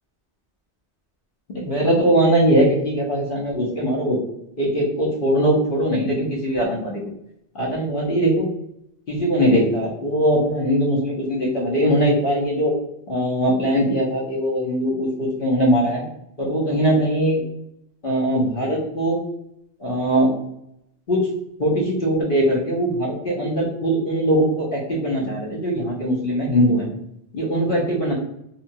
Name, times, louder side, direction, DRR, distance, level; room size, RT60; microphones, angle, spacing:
voice 1, 1.5-4.2 4.6-7.0 7.5-8.5 9.1-12.7 13.1-16.0 16.4-17.4 18.0-19.2 19.8-20.3 21.1-21.3 21.6-26.9 27.3-28.1, equal, 55° left, -4 dB, 0.9 m, -21 dB
2.9 x 2.3 x 2.6 m, 0.81 s
omnidirectional pair, 1.2 m